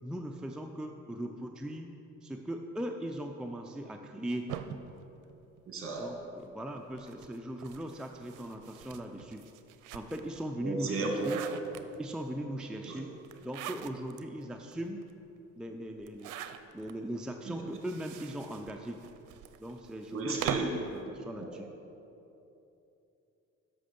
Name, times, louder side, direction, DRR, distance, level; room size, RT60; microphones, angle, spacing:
voice 1, 0.0-1.9 2.2-4.5 6.0-9.5 9.9-11.4 12.0-13.1 13.4-15.0 15.6-16.3 16.7-19.0 19.6-20.5 20.8-21.7, right 1 dB, 5° right, 3 dB, 0.5 m, -39 dB
sound 1, 4.5-6.1 6.9-10.4 10.8-12.2 13.2-14.2 14.7-14.8 15.0-15.1 16.0-16.9 17.7-20.9, right 10 dB, 85° right, 0.5 m, -42 dB
voice 2, 5.7-6.1 10.6-11.3 12.8-13.0 17.5-17.6 20.1-20.9, right 3 dB, 45° right, 1 dB, 2.0 m, -34 dB
7.7 x 6.1 x 6.8 m, 2.9 s
cardioid pair, 90°, 30 cm